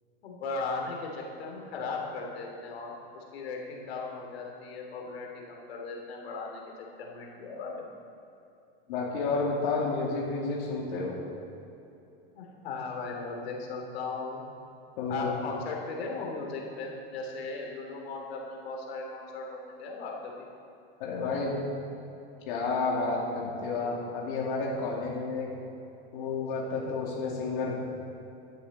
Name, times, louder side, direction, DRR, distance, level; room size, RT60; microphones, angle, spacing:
voice 1, 0.2-6.6 7.0-7.8 12.3-14.4 15.1-20.4, left 3 dB, 85° left, 0 dB, 2.9 m, -37 dB
voice 2, 8.9-11.2 15.0-15.3 21.0-21.5 22.5-25.5 26.1-27.7, left 4 dB, 55° left, -4 dB, 2.6 m, -30 dB
15.0 x 11.5 x 4.2 m, 2.8 s
supercardioid pair, 160°, 30 cm